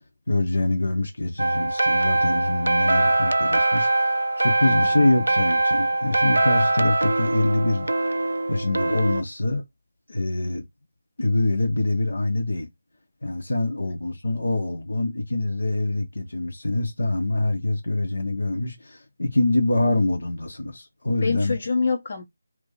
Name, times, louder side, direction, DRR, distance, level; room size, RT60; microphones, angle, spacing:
voice 1, 0.3-3.9 4.4-7.9 8.5-9.6 10.1-10.6 11.2-12.7 13.2-21.5, left 2 dB, 65° left, 1.1 m, -24 dB
sound 1, 1.4-9.2, right 2 dB, 65° right, 0.4 m, -22 dB
voice 2, 4.6-5.0 13.9-14.1 21.2-22.2, left 4 dB, 45° left, 1.1 m, -27 dB
2.8 x 2.6 x 4.0 m
figure-of-eight pair, 155°, 0 cm